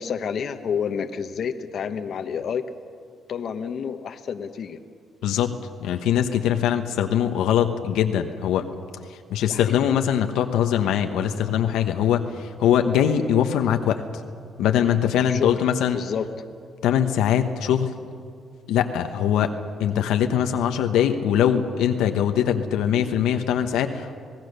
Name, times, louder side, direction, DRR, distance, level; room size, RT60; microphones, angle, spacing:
voice 1, 0.0-2.6 3.3-4.8 9.5-9.8 15.3-15.6 15.9-16.2, left 7 dB, 60° left, 8 dB, 1.1 m, -29 dB
voice 2, 5.2-5.5 5.8-8.7 9.1-14.0 14.6-16.0 16.8-17.9 18.7-19.5 19.8-24.2, left 9 dB, 90° left, 6 dB, 1.1 m, -22 dB
26.5 x 18.5 x 6.7 m, 2.2 s
cardioid pair, 90°, 0 cm